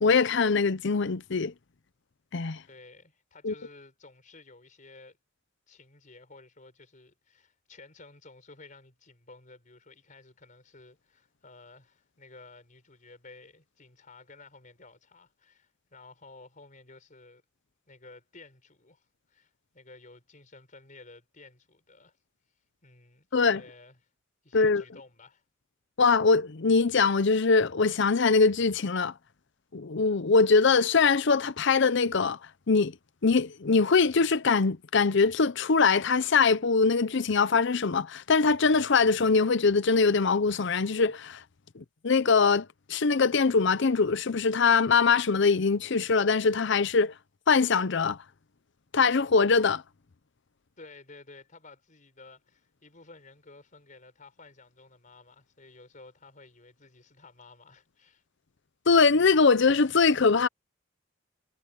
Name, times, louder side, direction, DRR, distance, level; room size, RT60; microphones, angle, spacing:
voice 1, 0.0-1.5 2.3-2.6 3.4-3.5 23.3-23.6 24.5-24.8 26.0-29.1 29.7-32.4 32.7-32.9 33.2-41.4 41.8-47.1 47.5-48.2 48.9-49.8 58.9-60.5, left 4 dB, 65° left, 0.7 m, -23 dB
voice 2, 2.6-5.2 5.7-17.4 17.9-22.2 22.8-24.1 24.4-25.4 50.8-58.2, left 3 dB, 40° left, 4.6 m, -53 dB
head